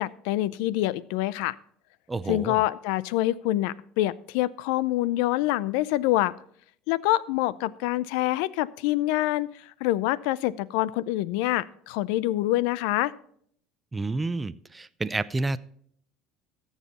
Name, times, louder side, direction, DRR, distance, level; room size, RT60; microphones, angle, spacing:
voice 1, 0.0-1.6 2.3-6.3 6.9-9.5 9.8-13.1, left 16 dB, 80° left, 21 dB, 0.5 m, -26 dB
voice 2, 2.1-2.6 13.9-15.6, right 3 dB, 15° right, 14 dB, 0.5 m, -29 dB
14.0 x 7.3 x 4.2 m, 0.63 s
supercardioid pair, 110°, 0 cm